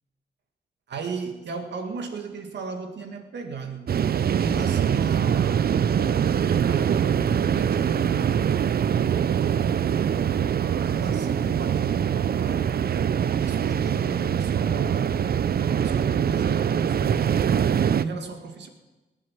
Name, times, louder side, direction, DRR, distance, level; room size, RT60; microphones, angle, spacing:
voice 1, 0.9-3.9 4.2-5.7 6.6-8.4 8.8-12.7 13.3-15.2 15.6-18.7, right 4 dB, 75° right, 2.0 m, -36 dB
sound 1, 3.9-18.0, right 8 dB, 60° right, 0.6 m, -23 dB
18.5 x 8.2 x 7.3 m
supercardioid pair, 40°, 18 cm